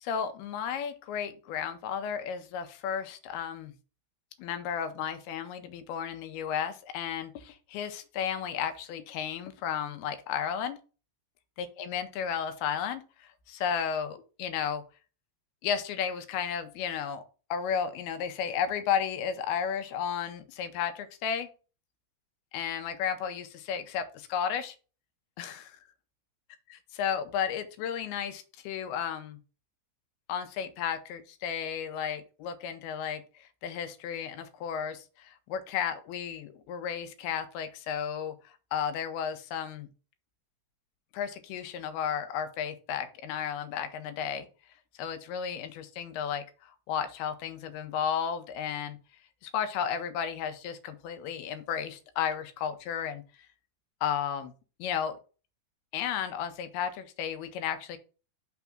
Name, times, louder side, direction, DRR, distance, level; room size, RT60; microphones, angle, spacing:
voice 1, 0.0-3.7 4.4-10.8 11.6-14.8 15.6-17.2 17.5-21.5 22.5-24.8 25.4-25.8 26.9-29.4 30.3-38.3 38.7-39.9 41.1-44.5 45.0-49.0 49.4-53.2 54.0-54.5 54.8-55.2 55.9-58.0, left 8 dB, 85° left, 9 dB, 2.6 m, -33 dB
5.9 x 3.6 x 5.8 m, 0.35 s
omnidirectional pair, 4.6 m